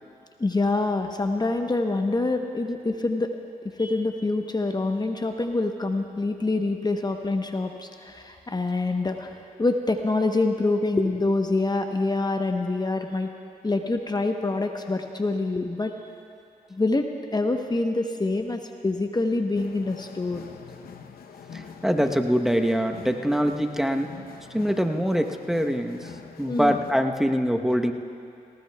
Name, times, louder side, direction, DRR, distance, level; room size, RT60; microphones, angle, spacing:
voice 1, 0.4-3.3 3.8-13.3 13.6-15.9 16.7-17.1 17.3-20.4 26.5-26.8, left 2 dB, 25° left, 5 dB, 0.9 m, -26 dB
sound 1, 19.5-26.9, left 6 dB, 75° left, 0.8 m, -44 dB
voice 2, 21.8-24.1 24.5-26.1 26.4-27.9, equal, ahead, 4 dB, 0.9 m, -24 dB
19.0 x 18.0 x 2.3 m, 2.5 s
cardioid pair, 55°, 15 cm